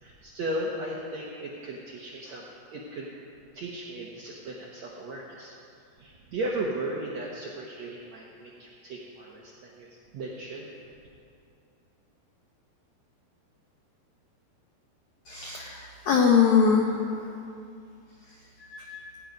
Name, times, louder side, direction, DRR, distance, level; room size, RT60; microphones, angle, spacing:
voice 1, 0.0-2.5 2.7-3.1 3.5-5.5 6.0-9.9 10.1-10.7, right 1 dB, 75° right, -3 dB, 1.6 m, -36 dB
voice 2, 15.3-17.0 18.7-19.1, left 6 dB, 90° left, 0 dB, 1.6 m, -23 dB
17.0 x 9.8 x 5.3 m, 2.4 s
omnidirectional pair, 4.8 m